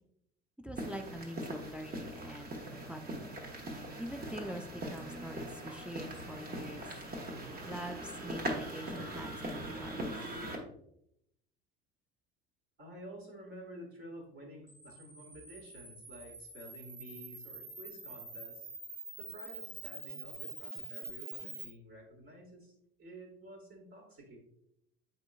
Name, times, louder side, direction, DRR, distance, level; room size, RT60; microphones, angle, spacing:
voice 1, 0.6-3.4 4.0-6.9 7.6-10.1, equal, 5° right, 4 dB, 0.3 m, -44 dB
sound 1, 0.8-10.6, right 1 dB, 30° right, 1.3 m, -41 dB
voice 2, 12.8-18.7 19.2-24.4, right 1 dB, 45° right, -3 dB, 1.9 m, -51 dB
Camera, 14.7-21.7, right 3 dB, 80° right, 1.5 m, -46 dB
7.7 x 5.2 x 2.4 m, 0.77 s
figure-of-eight pair, 65°, 32 cm